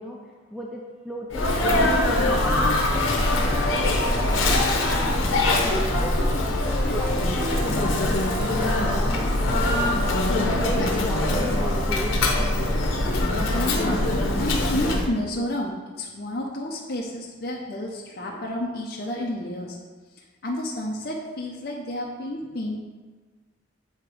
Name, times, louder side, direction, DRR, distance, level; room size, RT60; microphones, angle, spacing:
voice 1, 0.0-12.5, equal, ahead, -2 dB, 0.4 m, -36 dB
Sneeze, 1.3-15.1, left 1 dB, 85° left, 0.9 m, -23 dB
voice 2, 5.4-5.8 13.5-19.8 20.1-22.8, left 1 dB, 50° left, -2 dB, 0.6 m, -31 dB
8.0 x 2.9 x 4.8 m, 1.4 s
head